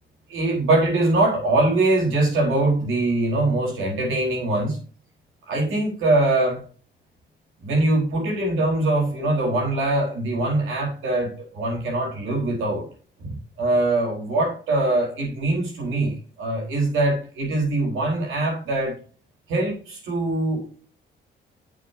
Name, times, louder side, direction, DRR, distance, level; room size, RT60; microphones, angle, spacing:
voice 1, 0.3-4.8 5.5-6.6 7.6-12.9 13.2-19.0 19.5-20.8, right 2 dB, 85° right, 0 dB, 4.6 m, -23 dB
8.4 x 7.8 x 2.8 m, 0.41 s
cardioid pair, 90°, 20 cm